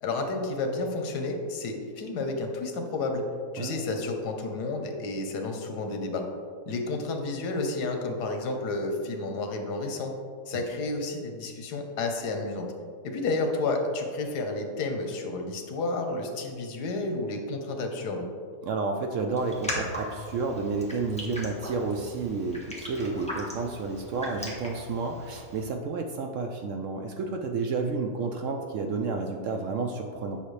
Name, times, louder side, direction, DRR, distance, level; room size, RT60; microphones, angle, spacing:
voice 1, 0.0-3.2 3.5-6.3 6.7-10.1 10.5-12.7 13.0-18.2, left 3 dB, 85° left, 4 dB, 1.4 m, -31 dB
voice 2, 18.6-30.4, right 4 dB, 65° right, 3 dB, 0.8 m, -31 dB
Raindrop, 19.4-25.6, equal, 5° left, 1.1 m, -39 dB
8.7 x 5.6 x 3.2 m, 2.1 s
omnidirectional pair, 1.7 m